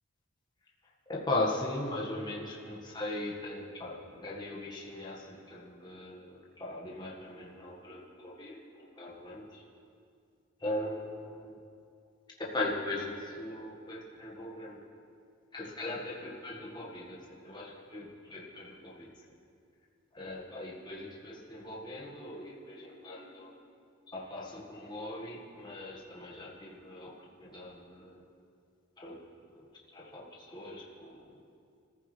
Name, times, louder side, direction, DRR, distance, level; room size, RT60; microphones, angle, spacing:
voice 1, 1.1-9.6 10.6-11.6 12.4-14.9 15.5-19.3 20.1-23.6 24.1-28.3 29.0-29.3 29.6-31.4, left 2 dB, 20° left, -4 dB, 1.7 m, -39 dB
26.0 x 14.5 x 3.4 m, 2.4 s
head